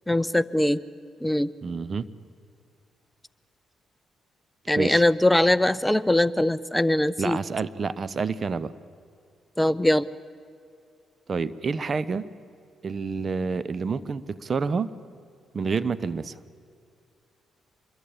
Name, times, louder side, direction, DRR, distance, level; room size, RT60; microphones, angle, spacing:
voice 1, 0.1-0.8 1.2-1.5 4.7-7.4 9.6-10.1, left 1 dB, 10° left, 18 dB, 0.6 m, -21 dB
voice 2, 1.6-2.1 4.7-5.0 7.2-8.7 11.3-12.2 12.8-14.9 15.5-16.4, right 5 dB, 45° right, 19 dB, 0.9 m, -28 dB
26.0 x 22.0 x 8.7 m, 2.4 s
hypercardioid pair, 45°, 0 cm